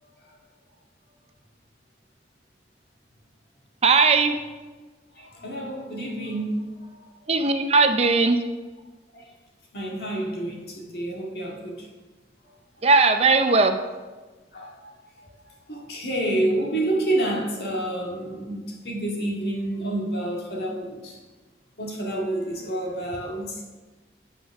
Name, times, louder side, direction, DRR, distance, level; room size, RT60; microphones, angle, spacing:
voice 1, 3.8-4.4 7.3-8.4 12.8-13.8, right 4 dB, 35° right, 7 dB, 0.5 m, -18 dB
voice 2, 5.2-6.6 9.1-9.3 9.7-11.9 14.5-14.7 15.7-21.2 21.8-23.6, right 1 dB, 60° left, -2 dB, 1.9 m, -28 dB
8.5 x 5.3 x 5.8 m, 1.3 s
head